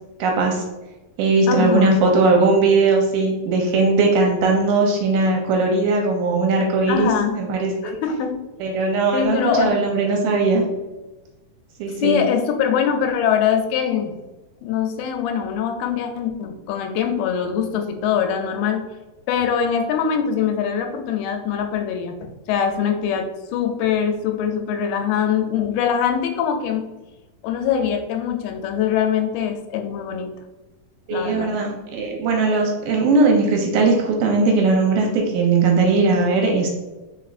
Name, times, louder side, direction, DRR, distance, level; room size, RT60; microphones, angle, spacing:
voice 1, 0.2-0.6 1.2-8.0 8.6-10.6 11.8-12.3 31.1-36.7, right 3 dB, 80° right, 1 dB, 2.2 m, -19 dB
voice 2, 1.5-2.0 6.9-7.4 7.8-8.3 9.1-9.8 12.0-14.1 14.6-18.8 19.3-26.9 27.4-30.3 31.1-31.5, left 8 dB, 85° left, 4 dB, 2.4 m, -23 dB
4.9 x 4.2 x 2.4 m, 1.1 s
omnidirectional pair, 4.2 m